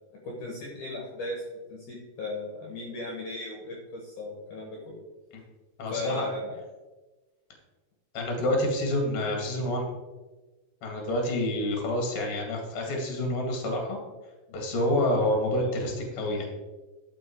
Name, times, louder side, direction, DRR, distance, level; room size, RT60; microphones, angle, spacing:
voice 1, 0.2-1.4 1.7-5.0 5.9-6.6 15.6-15.8, left 2 dB, 60° left, -1 dB, 2.5 m, -37 dB
voice 2, 5.8-6.3 8.1-9.9 10.8-14.0 14.5-16.5, left 1 dB, 40° left, 2 dB, 2.6 m, -28 dB
12.0 x 6.1 x 4.6 m, 1.2 s
omnidirectional pair, 4.7 m